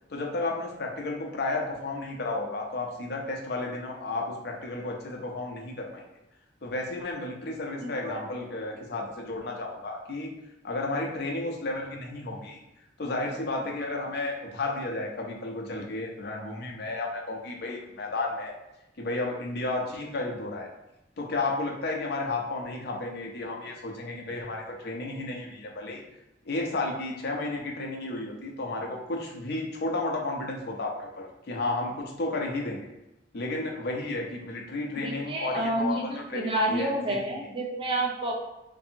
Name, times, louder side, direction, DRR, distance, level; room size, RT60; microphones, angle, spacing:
voice 1, 0.1-6.0 6.6-10.3 10.6-12.6 13.0-18.5 19.0-20.7 21.2-26.0 26.4-32.9 33.3-37.2, left 2 dB, 60° left, 0 dB, 0.5 m, -32 dB
voice 2, 7.8-8.2 35.0-38.3, right 1 dB, 25° right, 0 dB, 0.4 m, -29 dB
2.6 x 2.5 x 2.7 m, 0.92 s
head